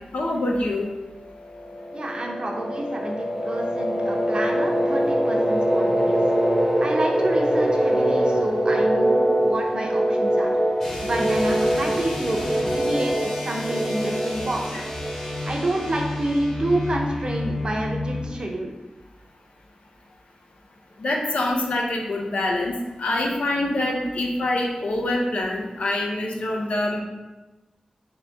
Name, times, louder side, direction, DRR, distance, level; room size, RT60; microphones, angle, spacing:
voice 1, 0.1-0.9 21.0-27.0, left 1 dB, 75° left, 0 dB, 0.6 m, -25 dB
sound 1, 1.3-15.9, right 1 dB, 5° right, 0.8 m, -23 dB
voice 2, 1.9-6.2 6.8-10.5 11.0-14.8 15.5-18.7, right 1 dB, 40° right, 0 dB, 0.6 m, -28 dB
sound 2, 10.8-18.3, left 2 dB, 20° left, 1.1 m, -32 dB
3.8 x 2.9 x 3.4 m, 1.1 s
wide cardioid pair, 115°, 2 cm